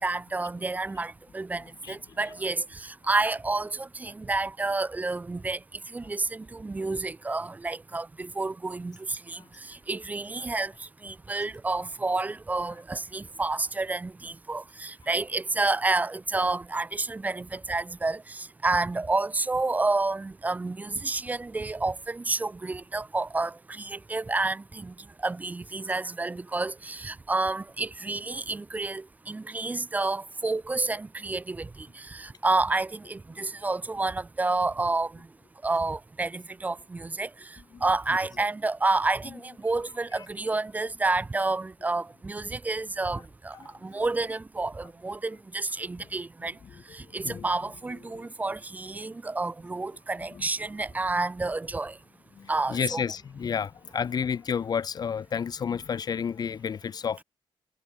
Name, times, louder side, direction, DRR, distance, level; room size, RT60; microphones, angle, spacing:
voice 1, 0.0-35.2 35.6-43.6 43.8-46.6 46.9-52.0 52.5-53.0, right 3 dB, 15° right, 0.6 m, -30 dB
voice 2, 52.4-57.2, left 7 dB, 45° left, 1.2 m, -31 dB
wide cardioid pair, 160°, 9 cm